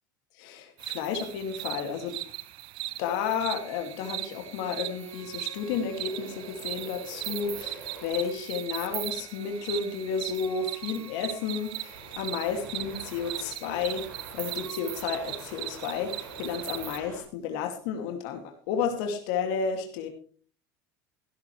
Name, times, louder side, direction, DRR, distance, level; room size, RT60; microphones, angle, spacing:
voice 1, 0.4-2.2 3.0-14.1 14.3-20.1, left 6 dB, 70° left, 4 dB, 2.4 m, -32 dB
sound 1, 0.8-17.0, right 16 dB, 60° right, 0.9 m, -39 dB
sound 2, 3.4-17.2, right 3 dB, 90° right, 7.6 m, -47 dB
15.5 x 13.0 x 3.2 m, 0.43 s
hypercardioid pair, 85°, 10 cm